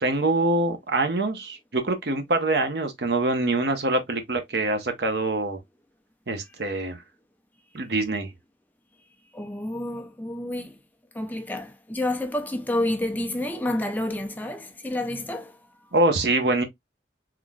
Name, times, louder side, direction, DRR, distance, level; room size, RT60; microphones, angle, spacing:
voice 1, 0.0-5.6 6.3-7.0 7.7-8.3 15.9-16.6, right 2 dB, 60° right, 0.8 m, -24 dB
voice 2, 9.3-10.7 11.1-15.6, left 1 dB, 10° left, 0.5 m, -29 dB
3.8 x 3.0 x 2.3 m
head